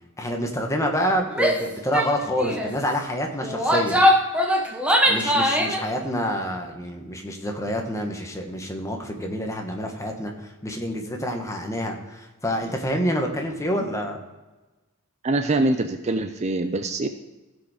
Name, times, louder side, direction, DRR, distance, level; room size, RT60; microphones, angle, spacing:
voice 1, 0.2-4.0 5.1-14.2, equal, 15° left, 2 dB, 1.2 m, -27 dB
Female speech woman speaking / Yell, 1.3-1.6 1.9-2.1 2.4-2.7 3.4-5.8, equal, 5° right, 0.9 m, -21 dB
voice 2, 15.2-17.1, right 2 dB, 30° right, 8 dB, 0.4 m, -24 dB
15.5 x 5.2 x 4.9 m, 1.1 s
head